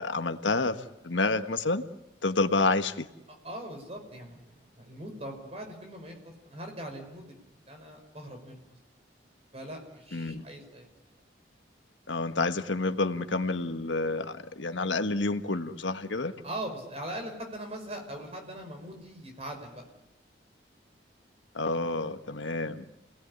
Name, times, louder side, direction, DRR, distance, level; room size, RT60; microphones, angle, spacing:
voice 1, 0.0-1.8 2.2-3.1 10.1-10.5 12.1-16.3 21.5-22.8, left 3 dB, 85° left, 8 dB, 1.5 m, -29 dB
voice 2, 3.3-7.4 7.7-8.6 9.5-10.9 16.4-19.8, right 1 dB, 35° right, 4 dB, 5.6 m, -41 dB
30.0 x 18.5 x 10.0 m, 0.95 s
head